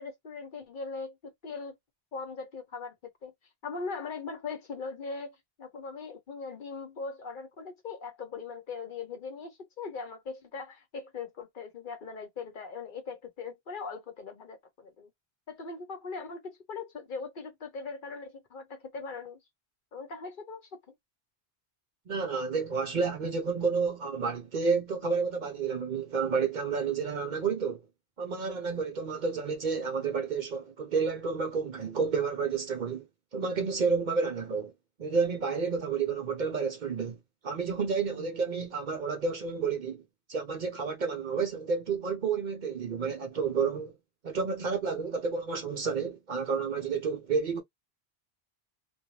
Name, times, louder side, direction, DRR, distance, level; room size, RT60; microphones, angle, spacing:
voice 1, 0.0-1.8 2.1-3.3 3.6-15.1 15.5-19.4 19.9-20.9, left 4 dB, 55° left, 0.8 m, -40 dB
voice 2, 22.1-27.8 28.2-33.1 33.3-34.7 35.0-37.2 37.4-40.0 40.3-43.9 44.2-47.6, right 5 dB, 55° right, 0.6 m, -30 dB
2.5 x 2.2 x 2.9 m
omnidirectional pair, 1.1 m